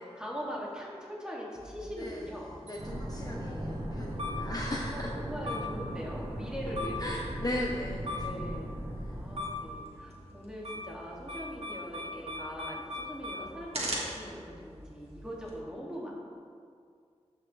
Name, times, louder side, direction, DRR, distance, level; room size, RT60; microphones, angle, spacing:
voice 1, 0.0-2.6 3.2-3.9 4.9-7.1 7.5-7.6 8.2-8.8 9.1-16.1, equal, 5° right, -5 dB, 2.5 m, -41 dB
sound 1, 1.6-15.5, left 1 dB, 60° right, 2.0 m, -41 dB
voice 2, 1.8-2.3 2.6-5.1 7.0-8.7, left 1 dB, 30° left, -1 dB, 0.8 m, -37 dB
sound 2, 2.8-9.8, right 1 dB, 40° right, 1.6 m, -38 dB
14.5 x 5.8 x 3.4 m, 2.2 s
wide cardioid pair, 65°, 12 cm